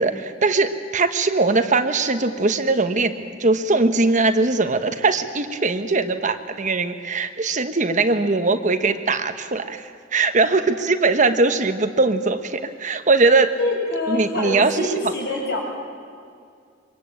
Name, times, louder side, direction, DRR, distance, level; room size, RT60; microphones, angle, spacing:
voice 1, 0.0-13.6 14.1-14.9, right 3 dB, 45° right, 8 dB, 1.1 m, -20 dB
voice 2, 13.6-15.6, left 1 dB, 65° left, 0 dB, 7.2 m, -25 dB
25.0 x 22.5 x 8.8 m, 2.2 s
head